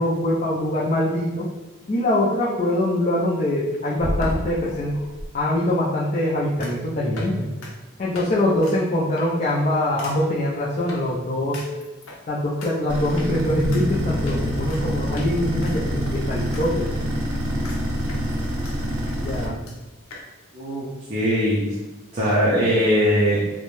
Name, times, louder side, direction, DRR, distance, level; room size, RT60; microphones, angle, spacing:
voice 1, 0.0-1.5 1.9-4.9 5.3-7.5 8.0-11.6 12.3-16.9 19.2-19.6, left 1 dB, 35° left, -6 dB, 0.3 m, -23 dB
sound 1, 4.0-5.3 6.6-6.8 7.1-7.3 7.6-7.7 8.1-8.3 8.6-8.8 9.2-9.4 10.0-10.1 10.9-11.0 11.5-12.2 12.6-12.7 13.2-13.3 13.7-13.8 14.3-14.8 15.2-15.3 15.6-16.7 16.9-17.0 17.6-17.8 18.1-18.7 19.1-19.2 19.4-19.5 19.7-19.8 20.1-20.2, equal, 80° left, 0.6 m, -33 dB
sound 2, 12.9-19.5, equal, 85° right, 0.6 m, -26 dB
voice 2, 20.5-20.8 21.1-21.6 22.1-23.4, equal, 35° right, -8 dB, 0.5 m, -20 dB
2.6 x 2.1 x 3.0 m, 1.1 s
head